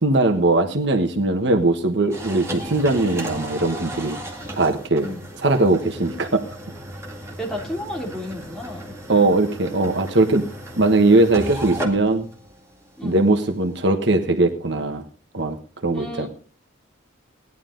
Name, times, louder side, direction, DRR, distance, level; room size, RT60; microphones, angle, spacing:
voice 1, 0.0-4.2 4.5-5.1 5.4-6.4 9.1-10.5 10.8-12.3 13.0-15.0 15.3-15.6 15.8-16.3, right 2 dB, 60° right, 6 dB, 1.3 m, -20 dB
sound 1, 2.1-13.8, right 1 dB, 15° right, 2.1 m, -35 dB
voice 2, 7.4-9.0 13.0-13.2 15.9-16.3, left 1 dB, ahead, -1 dB, 3.0 m, -32 dB
17.5 x 11.0 x 3.8 m, 0.39 s
head